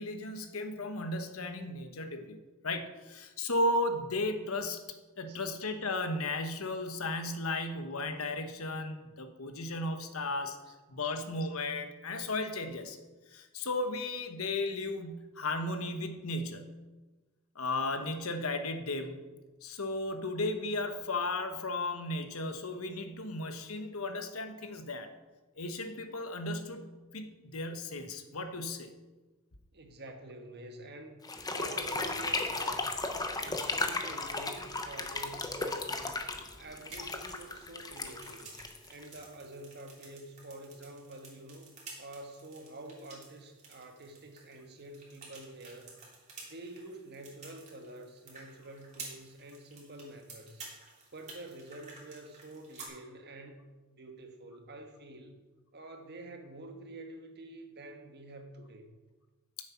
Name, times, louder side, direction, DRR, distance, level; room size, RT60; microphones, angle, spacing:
voice 1, 0.0-2.4 2.6-4.8 5.2-10.6 10.9-13.0 13.3-16.8 17.5-19.2 19.6-25.1 25.6-28.9, left 2 dB, 80° left, 7 dB, 1.2 m, -35 dB
voice 2, 29.7-32.8 33.3-36.2 36.5-38.6 38.8-41.7 42.0-46.0 46.4-55.4 55.7-58.9, right 1 dB, 50° right, 5 dB, 1.4 m, -48 dB
sound 1, 31.2-39.2, left 3 dB, 20° left, 0.9 m, -35 dB
sound 2, 36.8-52.9, right 4 dB, 35° right, 3.2 m, -52 dB
9.8 x 7.9 x 5.7 m, 1.2 s
head